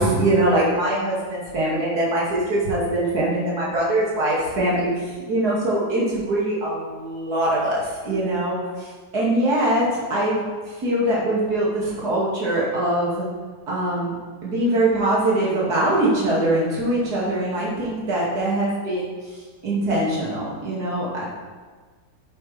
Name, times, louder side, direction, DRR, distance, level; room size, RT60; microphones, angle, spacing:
voice 1, 0.0-8.9 9.1-10.4 10.8-13.3 13.7-14.1 14.4-19.1 19.6-21.2, right 1 dB, 65° right, -6 dB, 2.9 m, -22 dB
8.4 x 8.4 x 3.4 m, 1.4 s
omnidirectional pair, 1.8 m